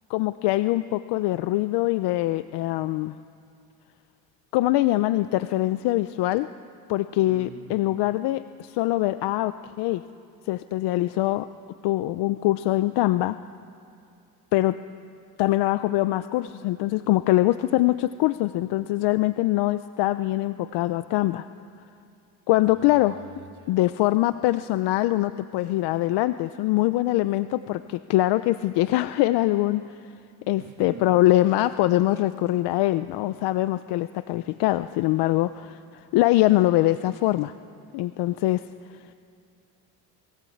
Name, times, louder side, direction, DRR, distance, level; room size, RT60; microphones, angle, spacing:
voice 1, 0.1-3.2 4.5-6.5 6.9-10.0 10.5-11.5 11.8-13.4 14.5-14.8 15.4-21.5 22.5-23.2 23.7-30.0 30.5-37.5 37.9-38.7, left 16 dB, 70° left, 13 dB, 0.7 m, -23 dB
voice 2, 7.2-8.0 22.7-23.8 30.6-31.1, right 7 dB, 45° right, 4 dB, 1.9 m, -45 dB
28.0 x 21.0 x 8.6 m, 2.5 s
cardioid pair, 100°, 42 cm